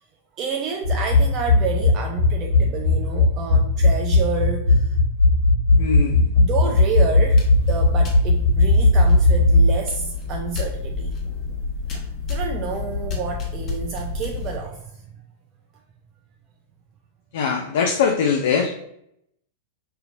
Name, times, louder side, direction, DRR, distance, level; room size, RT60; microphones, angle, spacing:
voice 1, 0.4-4.9 6.4-11.1 12.3-15.1, right 6 dB, 35° right, 2 dB, 0.4 m, -29 dB
sound 1, 0.8-9.8, left 2 dB, 75° right, 1.3 m, -17 dB
voice 2, 5.8-6.3 17.3-18.7, left 6 dB, 60° left, 2 dB, 0.5 m, -22 dB
sound 2, 7.2-14.6, left 4 dB, 35° left, 1.1 m, -30 dB
5.5 x 2.8 x 2.5 m, 0.75 s
figure-of-eight pair, 100°, 0 cm